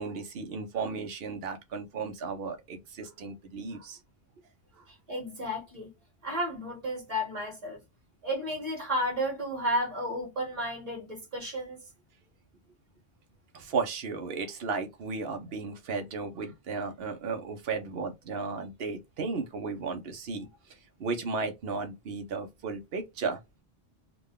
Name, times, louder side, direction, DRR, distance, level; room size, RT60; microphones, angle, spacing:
voice 1, 0.0-4.0 13.5-20.5 21.0-23.4, right 4 dB, 70° right, 1.0 m, -34 dB
voice 2, 4.9-5.9 6.2-7.8 8.2-11.8, equal, 35° right, 1.9 m, -32 dB
3.7 x 2.2 x 3.5 m
omnidirectional pair, 1.0 m